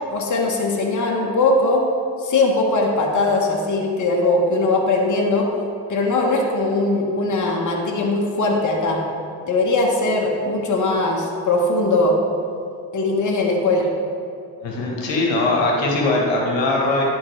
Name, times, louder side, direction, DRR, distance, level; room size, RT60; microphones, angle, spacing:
voice 1, 0.1-1.8 2.2-5.5 5.9-9.0 9.5-12.2 12.9-13.9, left 2 dB, 40° left, -1 dB, 1.2 m, -20 dB
voice 2, 14.6-17.0, left 2 dB, 70° left, -1 dB, 1.3 m, -20 dB
10.5 x 3.7 x 3.3 m, 2.4 s
supercardioid pair, 60°, 46 cm